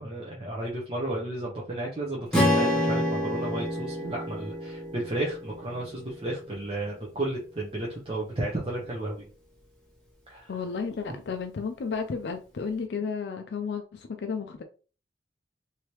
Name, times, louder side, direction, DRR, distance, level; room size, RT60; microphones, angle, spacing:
voice 1, 0.0-9.3 10.3-10.5, right 1 dB, 30° right, 0.7 m, -33 dB
Strum, 2.3-6.6, equal, 5° left, 0.9 m, -28 dB
voice 2, 10.5-14.6, left 5 dB, 75° left, 0.4 m, -33 dB
3.2 x 2.7 x 3.0 m
head